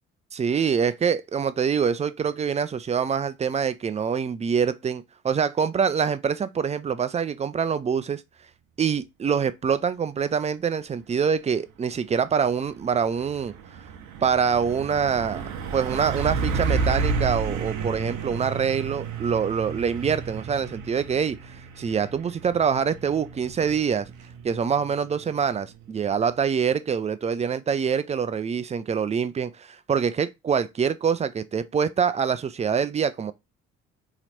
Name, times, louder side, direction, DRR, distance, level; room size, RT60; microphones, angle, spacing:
voice 1, 0.3-8.2 8.8-13.5 14.2-15.4 15.7-24.1 24.4-33.3, right 6 dB, 20° right, 0.5 m, -25 dB
Truck, 12.3-26.4, right 5 dB, 50° right, 0.8 m, -32 dB
3.9 x 3.0 x 4.2 m
figure-of-eight pair, 45°, 37 cm